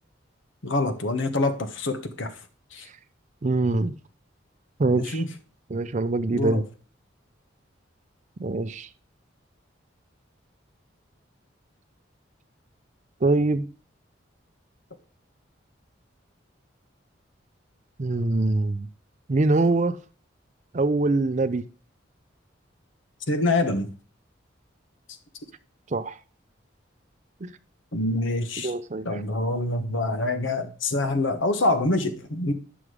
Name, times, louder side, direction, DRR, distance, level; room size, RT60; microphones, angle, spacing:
voice 1, 0.6-2.3 2.7-2.9 4.9-5.3 6.3-6.6 23.3-23.9 27.9-28.7 29.0-32.5, left 2 dB, 80° left, 1.2 m, -25 dB
voice 2, 3.4-3.9 4.8-5.2 5.7-6.6 8.4-8.9 13.2-13.7 18.0-18.9 19.3-20.0 20.7-21.7 25.9-26.2 27.4-27.5 28.6-29.2, right 2 dB, 40° right, 0.5 m, -23 dB
9.5 x 6.2 x 4.9 m
head